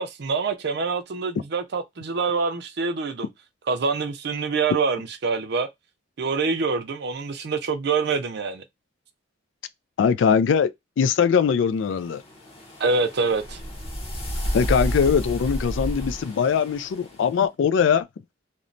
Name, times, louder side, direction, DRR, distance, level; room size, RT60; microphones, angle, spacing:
voice 1, 0.0-3.3 3.7-5.7 6.2-8.6 12.8-13.6, right 4 dB, 60° right, 0.5 m, -25 dB
voice 2, 10.0-10.7 11.0-12.2 14.5-18.1, left 7 dB, 70° left, 0.3 m, -21 dB
sound 1, 11.9-17.3, equal, 30° left, 0.9 m, -31 dB
3.0 x 2.1 x 2.5 m
head